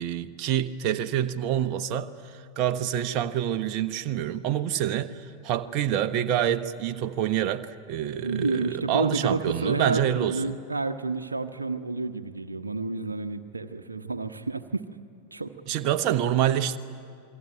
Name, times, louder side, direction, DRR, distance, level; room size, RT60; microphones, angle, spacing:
voice 1, 0.0-10.3 15.7-16.8, right 11 dB, 40° right, 1.1 m, -27 dB
voice 2, 8.2-14.9 15.3-15.5, right 3 dB, 80° right, 1.0 m, -30 dB
27.0 x 22.5 x 9.1 m
figure-of-eight pair, 90°, 0 cm